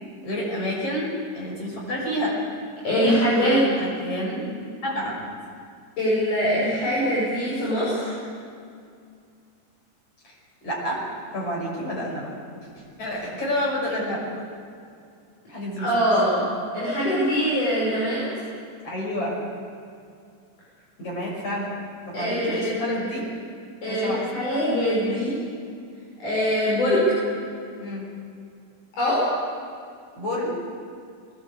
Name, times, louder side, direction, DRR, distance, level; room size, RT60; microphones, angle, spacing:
voice 1, 0.2-1.1 1.4-2.4 2.9-4.4 4.8-5.2 10.2-10.3 10.6-11.0 11.3-12.3 12.8-14.4 15.5-15.9 18.8-19.4 21.0-21.8 22.1-23.2 23.8-24.2 27.8-28.1 30.1-30.6, equal, 45° left, -3 dB, 7.0 m, -29 dB
voice 2, 2.8-3.6 6.0-8.1 15.8-16.4 16.7-18.3 22.1-23.2 23.8-25.4 26.2-27.2 29.0-29.2, equal, 65° left, -8 dB, 7.4 m, -23 dB
21.5 x 18.5 x 8.4 m, 2.3 s
omnidirectional pair, 3.9 m